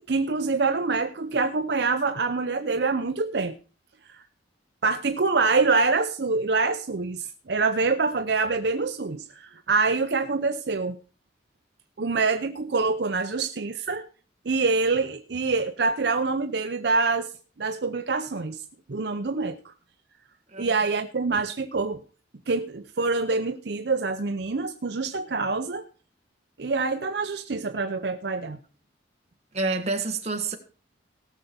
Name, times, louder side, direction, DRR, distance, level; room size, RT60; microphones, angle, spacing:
voice 1, 0.1-3.6 4.1-4.2 4.8-11.0 12.0-14.1 14.5-17.3 17.6-18.6 18.9-19.7 20.6-22.0 22.5-25.8 26.6-28.6, right 4 dB, 65° right, 0.6 m, -25 dB
voice 2, 29.5-30.6, right 3 dB, 35° right, 1.4 m, -28 dB
18.0 x 6.7 x 4.3 m
head